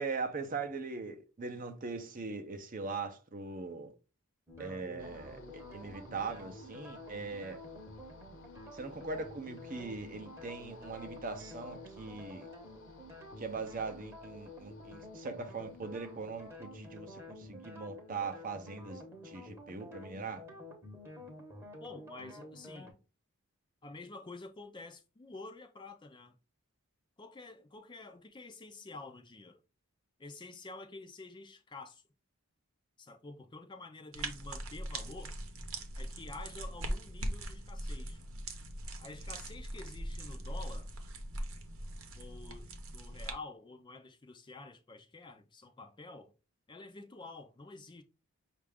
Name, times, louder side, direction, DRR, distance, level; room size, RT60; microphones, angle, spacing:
voice 1, 0.0-3.9 4.6-7.6 8.7-12.5 13.4-20.4, right 4 dB, 35° right, 0.6 m, -41 dB
sound 1, 4.5-22.9, left 2 dB, 10° right, 0.9 m, -50 dB
sound 2, 5.0-19.1, equal, 55° left, 0.8 m, -57 dB
voice 2, 21.8-23.0 23.8-26.3 27.2-29.6 30.2-32.0 33.0-35.4 35.9-38.2 39.0-40.9 42.2-46.3 46.7-48.0, left 3 dB, 20° left, 0.4 m, -49 dB
sound 3, 34.1-43.3, right 1 dB, 65° right, 0.8 m, -41 dB
5.5 x 2.5 x 3.4 m
head